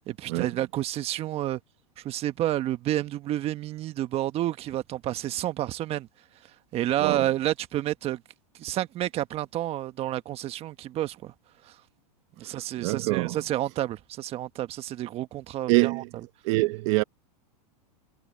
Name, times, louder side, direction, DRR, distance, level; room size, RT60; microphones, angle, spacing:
voice 1, 0.1-1.6 2.0-6.1 6.7-8.2 8.6-11.3 11.6-11.7 12.4-16.0, right 13 dB, 30° right, 1.3 m, -30 dB
voice 2, 12.5-13.4 15.7-16.1 16.4-17.0, right 23 dB, 50° right, 0.9 m, -25 dB
supercardioid pair, 140°, 20 cm